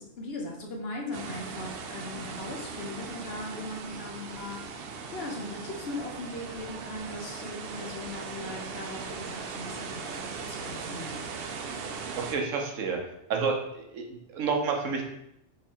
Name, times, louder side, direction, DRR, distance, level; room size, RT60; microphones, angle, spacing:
voice 1, 0.0-11.3, left 2 dB, 55° left, 0 dB, 1.0 m, -39 dB
sound 1, 1.1-12.3, right 5 dB, 60° right, 0.6 m, -39 dB
voice 2, 12.2-13.0 13.3-15.0, right 5 dB, 90° right, 2 dB, 1.2 m, -29 dB
3.6 x 3.2 x 4.3 m, 0.80 s
omnidirectional pair, 1.3 m